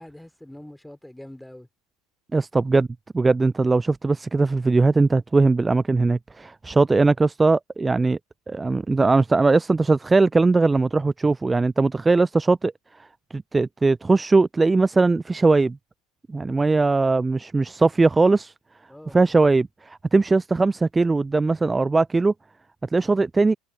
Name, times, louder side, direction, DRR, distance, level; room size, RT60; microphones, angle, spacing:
voice 1, 0.0-1.7 18.9-19.2, left 1 dB, 5° left, 3.8 m, -44 dB
voice 2, 2.3-2.9 3.1-8.2 8.5-12.7 13.3-15.8 16.3-18.5 19.1-22.3 22.9-23.5, right 3 dB, 15° right, 0.4 m, -20 dB
figure-of-eight pair, 75°, 0 cm